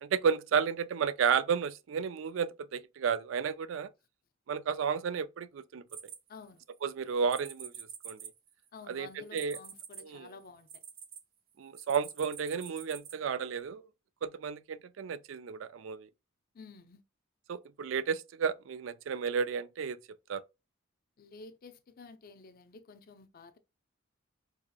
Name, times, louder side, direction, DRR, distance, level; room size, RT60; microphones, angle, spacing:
voice 1, 0.0-3.9 4.5-5.8 6.8-8.3 8.9-9.6 10.0-10.3 11.6-13.9 14.2-16.1 17.5-20.0 20.3-20.4, right 6 dB, 70° right, 0.4 m, -32 dB
sound 1, 5.9-6.7 7.3-11.2 11.7-13.1, right 8 dB, 50° right, 0.7 m, -46 dB
voice 2, 6.3-6.6 8.7-10.7 16.5-17.0 21.2-23.6, left 4 dB, 50° left, 0.5 m, -51 dB
4.8 x 2.8 x 2.2 m
head